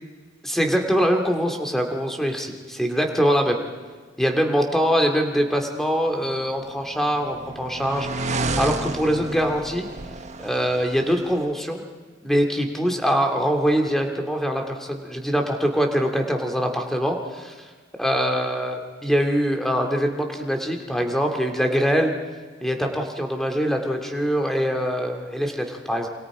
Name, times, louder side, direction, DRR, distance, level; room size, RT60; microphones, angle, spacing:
voice 1, 0.4-3.6 4.2-9.9 10.4-11.8 12.2-17.5 18.0-22.1 22.6-26.1, equal, ahead, 3 dB, 2.4 m, -23 dB
sound 1, 6.6-11.5, right 2 dB, 40° right, 1.2 m, -31 dB
27.5 x 25.5 x 5.0 m, 1.5 s
head